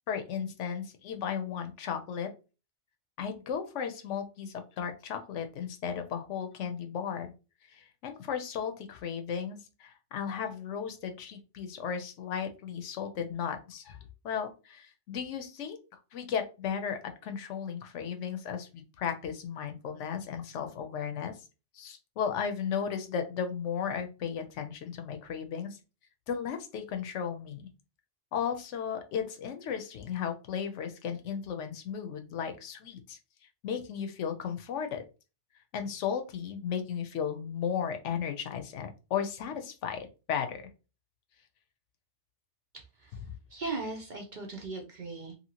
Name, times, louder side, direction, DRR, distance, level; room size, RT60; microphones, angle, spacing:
voice 1, 0.1-2.3 3.2-7.3 7.7-14.0 14.2-15.8 16.1-21.4 21.7-25.8 26.3-27.7 28.3-33.2 33.6-35.0 35.7-40.6, left 7 dB, 75° left, 6 dB, 0.9 m, -35 dB
voice 2, 42.7-43.1 43.5-45.3, right 3 dB, 50° right, 1 dB, 0.6 m, -38 dB
2.8 x 2.7 x 2.8 m, 0.31 s
omnidirectional pair, 1.3 m